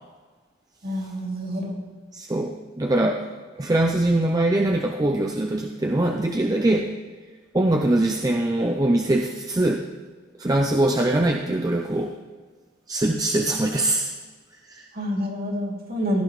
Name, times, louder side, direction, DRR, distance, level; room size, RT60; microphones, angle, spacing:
voice 1, 0.8-1.8 14.9-16.2, equal, 50° right, -1 dB, 2.6 m, -27 dB
voice 2, 2.1-3.3 3.6-6.9 7.5-9.9 10.4-12.2 12.9-14.1 14.7-14.9, right 1 dB, 20° right, 2 dB, 0.5 m, -22 dB
16.5 x 11.0 x 3.2 m, 1.4 s
head